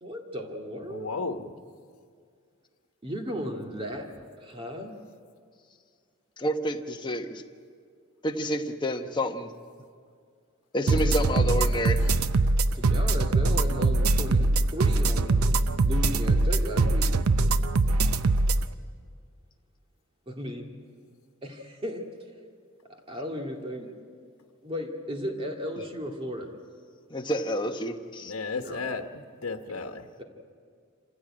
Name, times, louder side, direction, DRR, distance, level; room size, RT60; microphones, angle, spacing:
voice 1, 0.0-1.1 3.0-4.1 4.4-4.9 10.9-11.2 12.7-15.3 15.8-17.1 20.3-20.7 21.4-22.1 22.9-23.9 24.6-26.5 28.6-28.8, equal, 25° right, 2 dB, 2.2 m, -35 dB
voice 2, 0.9-1.5 28.2-29.1 29.4-30.1, left 4 dB, 75° left, 6 dB, 1.2 m, -33 dB
voice 3, 6.4-7.4 8.2-9.5 10.7-12.0 27.1-28.3, equal, 20° left, 4 dB, 1.1 m, -29 dB
sound 1, 10.9-18.6, right 2 dB, 80° right, 0.7 m, -23 dB
26.5 x 16.0 x 8.8 m, 2.1 s
head